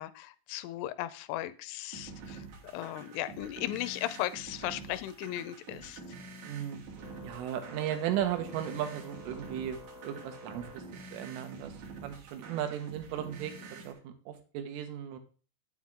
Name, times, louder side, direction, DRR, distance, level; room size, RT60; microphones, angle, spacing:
voice 1, 0.0-6.0, left 14 dB, 85° left, 14 dB, 3.0 m, -37 dB
sound 1, 1.9-13.9, right 4 dB, 60° right, 2.2 m, -47 dB
voice 2, 6.5-6.8 7.2-10.8 11.1-11.7 12.0-15.2, right 10 dB, 85° right, 7 dB, 3.8 m, -36 dB
Organ, 7.0-11.5, left 2 dB, 45° right, 1.1 m, -51 dB
9.7 x 8.6 x 3.6 m, 0.38 s
omnidirectional pair, 5.6 m